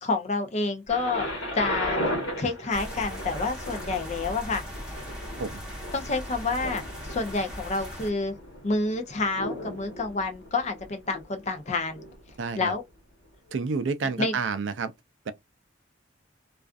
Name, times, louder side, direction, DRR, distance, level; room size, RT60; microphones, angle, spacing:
voice 1, 0.0-2.0 2.4-4.6 5.9-6.8 7.1-8.4 8.6-12.0 12.5-12.8 14.2-14.3, left 3 dB, 35° left, 0.5 m, -28 dB
Thunder, 0.9-12.7 13.5-13.6, equal, 75° left, 1.2 m, -36 dB
sound 1, 2.7-8.1, equal, 5° right, 0.9 m, -38 dB
voice 2, 12.4-12.7 13.5-14.9 15.3-15.4, right 4 dB, 70° right, 0.4 m, -29 dB
2.4 x 2.3 x 2.4 m
head